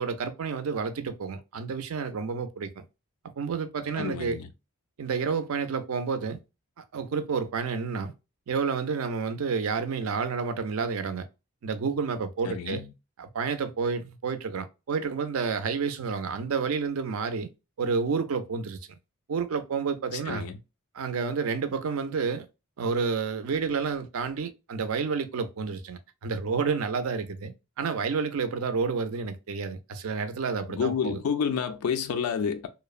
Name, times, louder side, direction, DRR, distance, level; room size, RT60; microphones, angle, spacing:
voice 1, 0.0-2.8 3.4-4.4 5.0-6.4 6.8-8.1 8.5-11.3 11.6-12.8 13.2-17.5 17.8-18.8 19.3-20.5 20.9-22.5 22.8-31.2, right 5 dB, 70° right, 0.4 m, -30 dB
voice 2, 4.0-4.5 12.4-12.9 20.1-20.5 30.7-32.7, left 7 dB, 90° left, 0.3 m, -29 dB
2.8 x 2.0 x 2.3 m
head